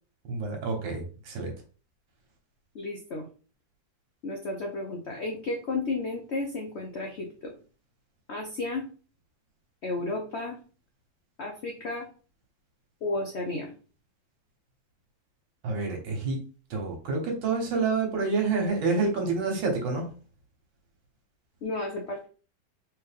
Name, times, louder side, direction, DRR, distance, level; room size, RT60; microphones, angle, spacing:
voice 1, 0.3-1.5 15.6-16.4 16.7-20.1, right 4 dB, 80° right, 2 dB, 1.8 m, -28 dB
voice 2, 2.7-3.3 4.2-7.5 8.3-8.9 9.8-10.6 11.4-12.1 13.0-13.7 21.6-22.3, left 2 dB, 70° left, 1 dB, 0.6 m, -33 dB
3.3 x 3.3 x 3.4 m, 0.37 s
omnidirectional pair, 2.0 m